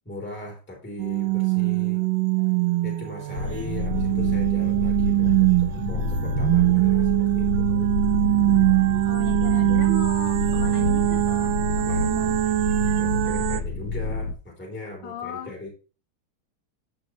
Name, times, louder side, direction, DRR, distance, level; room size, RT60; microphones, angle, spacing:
voice 1, 0.0-2.0 2.8-7.9 11.8-12.2 13.0-15.7, left 2 dB, 5° left, -3 dB, 3.0 m, -39 dB
sound 1, 1.0-13.6, right 19 dB, 75° right, 1.2 m, -22 dB
sound 2, 3.2-13.0, left 3 dB, 40° left, 5.4 m, -52 dB
sound 3, 3.3-14.3, left 3 dB, 55° left, 1.4 m, -28 dB
voice 2, 9.1-12.4 15.0-15.5, left 6 dB, 75° left, 6 dB, 1.8 m, -37 dB
12.5 x 6.2 x 3.0 m, 0.35 s
omnidirectional pair, 2.3 m